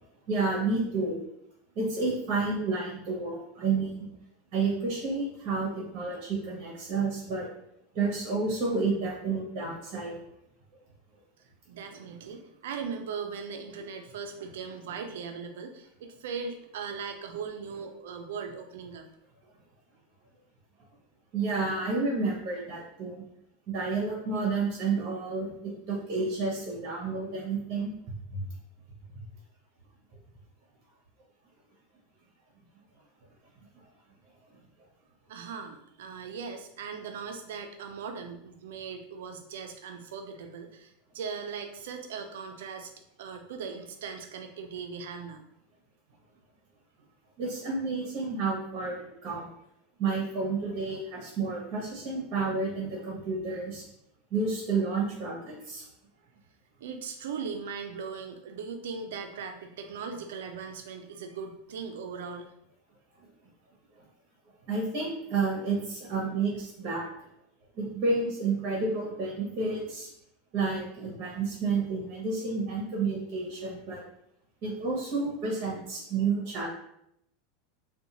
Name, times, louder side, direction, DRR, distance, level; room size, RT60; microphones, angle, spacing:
voice 1, 0.3-1.1 1.8-4.1 4.5-7.5 7.9-10.2 21.3-23.2 23.7-27.9 28.3-28.5 29.1-29.2 47.4-49.5 50.0-53.8 54.3-55.9 64.7-67.1 67.8-70.1 70.5-74.0 74.6-76.7, right 4 dB, 50° right, -2 dB, 0.8 m, -30 dB
voice 2, 11.7-15.9 16.2-19.0 35.3-42.9 43.2-45.4 56.8-62.5, right 5 dB, 80° right, 6 dB, 0.4 m, -39 dB
2.5 x 2.2 x 2.8 m, 0.75 s
supercardioid pair, 115°, 0 cm